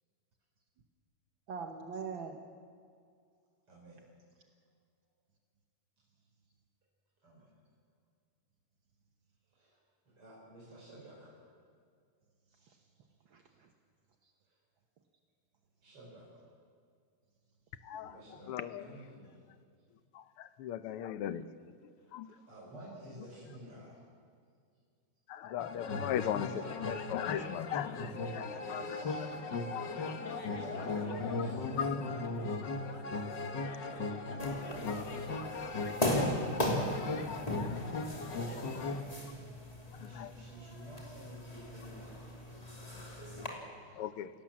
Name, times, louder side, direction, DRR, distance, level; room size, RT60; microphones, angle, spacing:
voice 1, 1.5-2.4 12.5-12.9 13.3-13.7 14.2-14.3 29.8-29.9 37.6-38.1, right 5 dB, 65° right, 4 dB, 1.9 m, -44 dB
voice 2, 3.7-4.0 7.2-7.5 9.5-9.8 10.1-11.3 14.5-14.6 15.8-16.2 18.0-18.5 18.8-19.4 22.0-22.1 22.5-24.0 28.3-29.3 30.6-31.7 34.3-36.1 38.3-38.8 39.9-42.2 43.8-44.0, right 1 dB, 80° right, -6 dB, 6.2 m, -50 dB
voice 3, 18.5-18.8 20.2-21.4 22.1-22.3 25.3-28.8 29.7-30.1 31.8-32.0 37.7-37.8 40.1-40.3 44.0-44.3, left 10 dB, 85° left, 12 dB, 1.8 m, -38 dB
sound 1, 25.6-39.0, left 3 dB, 55° left, 2.0 m, -37 dB
sound 2, 34.4-43.5, left 1 dB, 15° left, 3.1 m, -37 dB
28.5 x 17.5 x 7.5 m, 2.2 s
omnidirectional pair, 2.4 m